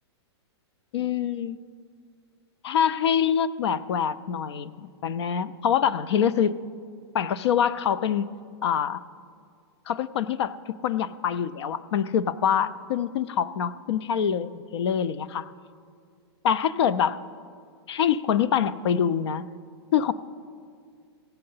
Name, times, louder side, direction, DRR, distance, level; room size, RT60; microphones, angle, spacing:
voice 1, 0.9-1.6 2.6-6.6 7.1-8.3 8.6-9.0 9.9-15.5 16.4-17.2 17.9-19.5 19.9-20.1, left 8 dB, 70° left, 16 dB, 0.5 m, -25 dB
16.5 x 6.7 x 5.6 m, 2.1 s
hypercardioid pair, 145°, 14 cm